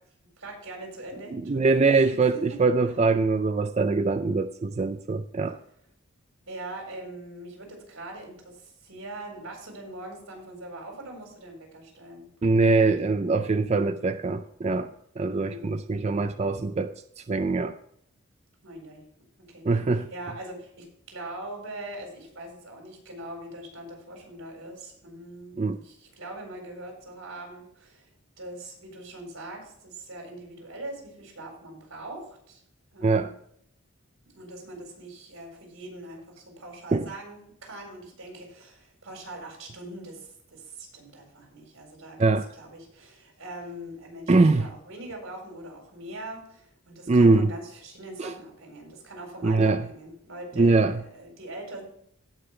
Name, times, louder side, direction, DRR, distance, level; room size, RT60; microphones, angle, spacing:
voice 1, 0.4-2.6 6.5-12.3 15.3-16.2 18.6-19.0 19.4-28.1 28.4-32.6 32.9-33.4 34.3-51.8, right 1 dB, 90° right, 1 dB, 4.2 m, -42 dB
voice 2, 1.3-5.6 12.4-16.9 17.3-17.7 19.7-20.1 25.6-25.8 33.0-33.3 36.9-37.1 42.2-42.4 44.3-44.7 47.1-47.5 48.2-48.3 49.4-49.9 50.6-51.0, right 3 dB, 30° right, 9 dB, 0.4 m, -23 dB
16.5 x 5.6 x 3.3 m, 0.68 s
head